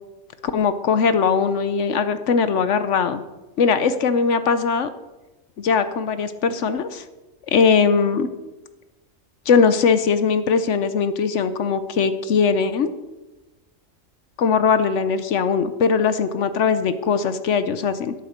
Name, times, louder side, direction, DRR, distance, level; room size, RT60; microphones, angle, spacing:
voice 1, 0.4-3.2 3.6-4.9 5.6-7.0 7.5-8.3 9.5-12.9 14.4-18.1, left 5 dB, 65° left, 11 dB, 1.0 m, -20 dB
12.5 x 7.9 x 6.5 m, 1.1 s
omnidirectional pair, 1.4 m